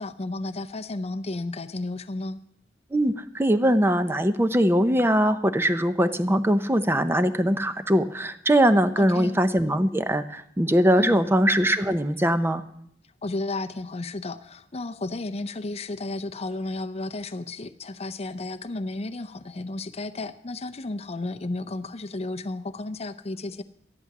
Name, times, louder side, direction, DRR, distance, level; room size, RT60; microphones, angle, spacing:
voice 1, 0.0-2.4 9.0-9.4 11.0-11.3 13.2-23.6, left 2 dB, 35° left, 10 dB, 0.6 m, -33 dB
voice 2, 2.9-12.6, equal, 15° right, 10 dB, 0.7 m, -21 dB
13.0 x 11.0 x 6.0 m, 0.71 s
head